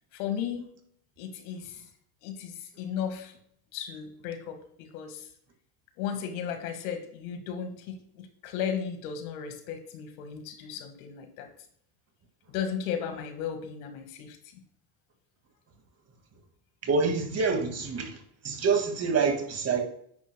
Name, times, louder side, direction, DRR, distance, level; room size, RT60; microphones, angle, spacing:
voice 1, 0.1-0.6 1.2-1.8 2.2-3.3 3.7-5.3 6.0-11.5 12.5-14.6, left 8 dB, 90° left, 6 dB, 1.8 m, -35 dB
voice 2, 16.8-18.2 18.4-19.8, right 5 dB, 35° right, 5 dB, 2.0 m, -26 dB
10.0 x 9.2 x 2.2 m, 0.66 s
supercardioid pair, 110°, 43 cm